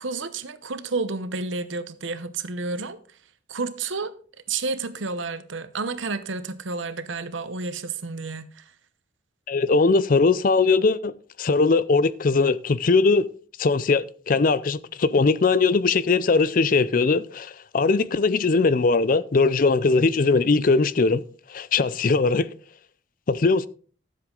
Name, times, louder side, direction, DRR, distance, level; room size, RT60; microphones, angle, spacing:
voice 1, 0.0-3.0 3.5-4.1 4.5-8.6, right 3 dB, 85° right, 0.9 m, -30 dB
voice 2, 9.5-11.1 11.4-13.3 13.6-21.2 21.5-22.5 23.3-23.7, left 4 dB, 45° left, 0.5 m, -20 dB
13.0 x 7.6 x 3.9 m
head